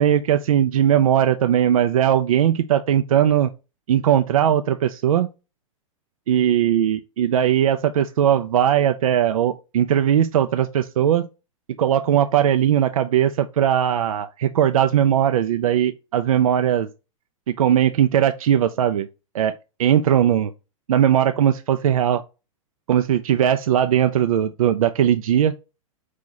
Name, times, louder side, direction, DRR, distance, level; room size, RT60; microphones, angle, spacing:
voice 1, 0.0-3.5 3.9-5.3 6.3-11.3 11.8-16.9 17.5-19.1 19.3-19.5 19.8-20.5 20.9-22.2 22.9-25.5, right 10 dB, 85° right, 0.4 m, -19 dB
4.8 x 2.8 x 3.9 m
hypercardioid pair, 120°, 17 cm